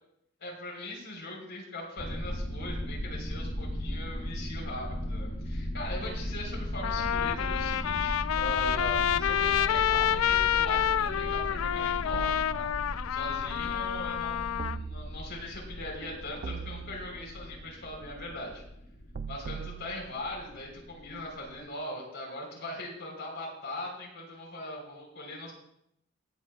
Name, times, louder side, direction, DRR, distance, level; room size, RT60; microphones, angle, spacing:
voice 1, 0.4-12.7 13.1-18.6 19.3-25.5, left 1 dB, 60° left, -1 dB, 4.0 m, -40 dB
sound 1, 2.0-21.6, equal, 40° left, 3.0 m, -37 dB
Trumpet, 6.1-6.2 6.8-14.8, left 10 dB, 80° left, 0.4 m, -28 dB
sound 2, 12.1-13.2 14.6-15.6 16.4-17.5 19.1-20.6, right 5 dB, 45° right, 0.3 m, -41 dB
20.0 x 8.3 x 2.4 m, 0.76 s
head